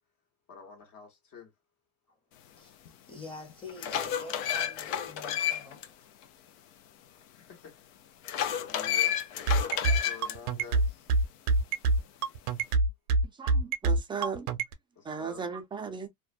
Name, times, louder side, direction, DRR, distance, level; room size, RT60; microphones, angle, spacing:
voice 1, 0.5-1.5 7.2-7.9 8.7-9.2 9.8-11.1 15.0-15.5, left 6 dB, 45° left, 1.2 m, -49 dB
voice 2, 2.6-5.8, left 2 dB, 10° left, 0.9 m, -46 dB
sound 1, 2.9-3.0 3.5-5.9 6.2-6.3 8.2-10.4, left 10 dB, 60° left, 0.6 m, -31 dB
sound 2, 9.5-14.7, right 3 dB, 80° right, 0.6 m, -25 dB
voice 3, 13.4-14.5 15.0-16.1, right 5 dB, 10° right, 0.4 m, -36 dB
2.4 x 2.1 x 2.4 m
supercardioid pair, 110°, 44 cm